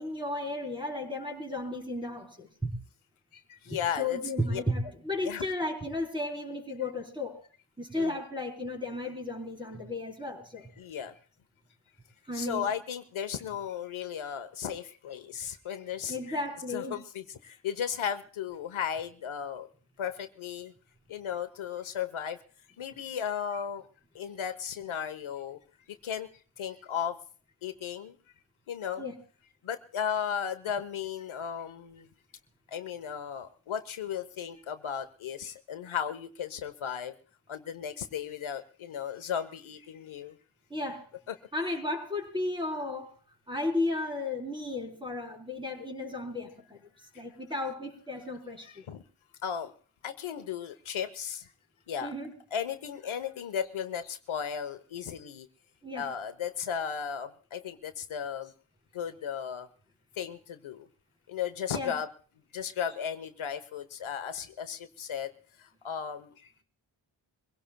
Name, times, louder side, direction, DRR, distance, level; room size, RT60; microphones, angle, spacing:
voice 1, 0.0-2.7 3.7-7.4 7.8-10.7 12.3-12.7 16.1-17.0 29.0-29.2 40.7-41.1 41.5-43.1 43.5-46.9 47.2-48.8 52.0-52.3 55.8-56.1 61.7-62.0, left 2 dB, 10° right, 3 dB, 4.0 m, -34 dB
voice 2, 3.3-4.2 4.5-4.6 5.2-5.5 8.0-8.2 10.8-11.1 12.3-16.4 16.7-19.7 20.0-20.7 21.1-22.4 22.8-23.9 24.1-25.6 26.0-26.3 26.6-27.2 27.6-28.2 28.7-29.0 29.6-32.1 32.7-37.1 37.5-40.4 41.3-41.4 48.7-49.0 49.4-49.7 50.0-51.5 51.9-52.1 52.5-55.5 55.9-58.5 58.9-59.7 60.2-60.9 61.3-62.1 62.5-65.3 65.6-66.6, left 8 dB, 80° left, 9 dB, 1.2 m, -35 dB
24.0 x 17.0 x 2.3 m, 0.41 s
wide cardioid pair, 100°, 47 cm